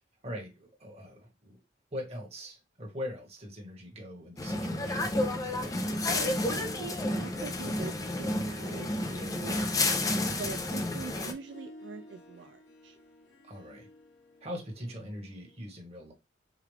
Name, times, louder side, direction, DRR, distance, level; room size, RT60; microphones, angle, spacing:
voice 1, 0.2-1.6 1.9-5.2 13.4-13.9 14.4-16.1, equal, 35° right, 1.3 m, -41 dB
Harp, 4.4-15.6, left 1 dB, 70° left, 1.1 m, -52 dB
sound 1, 4.4-11.3, left 2 dB, 20° left, 0.5 m, -31 dB
voice 2, 6.1-9.7 10.4-13.0, right 5 dB, 70° right, 0.3 m, -43 dB
5.0 x 2.4 x 3.2 m
head